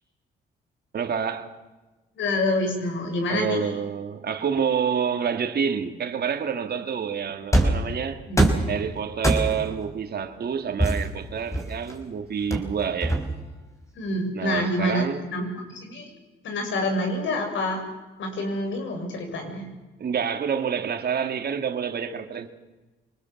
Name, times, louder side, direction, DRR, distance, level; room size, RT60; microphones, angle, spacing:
voice 1, 0.9-1.5 3.3-8.2 8.7-13.2 14.4-15.2 20.0-22.5, right 7 dB, 55° right, 2.4 m, -28 dB
voice 2, 2.2-3.7 8.3-8.5 13.9-15.1 15.3-16.1 16.4-17.8 18.2-19.7, left 1 dB, 75° left, 7.1 m, -27 dB
sound 1, 7.5-7.9 8.4-8.7 9.2-9.7 10.8-11.9 12.5-13.5, right 1 dB, 15° left, 4.9 m, -22 dB
26.0 x 20.0 x 7.3 m
cardioid pair, 90°, 20 cm